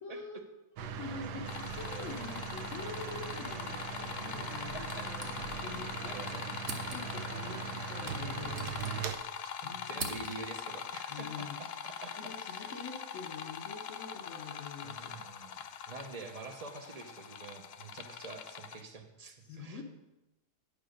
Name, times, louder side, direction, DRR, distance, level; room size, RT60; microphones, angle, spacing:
voice 1, 0.0-0.4 0.8-6.4 6.9-7.6 7.9-9.0 9.6-10.1 11.1-11.6 12.2-15.1 19.5-19.8, left 4 dB, 55° left, -1 dB, 1.4 m, -45 dB
sound 1, 0.8-9.1, right 6 dB, 85° right, 1.3 m, -40 dB
voice 2, 1.1-1.8 4.3-5.1 6.0-6.7 7.1-7.8 9.4-12.2 12.6-12.7 14.8-19.8, right 3 dB, 35° right, 5 dB, 0.7 m, -47 dB
sound 2, 1.4-18.8, left 7 dB, 85° left, 0.5 m, -43 dB
sound 3, 4.8-5.8 6.1-6.2 6.6-7.3 8.1-9.4 9.7-10.7, right 3 dB, 50° right, 1.2 m, -44 dB
9.8 x 5.0 x 6.4 m, 0.95 s
omnidirectional pair, 1.7 m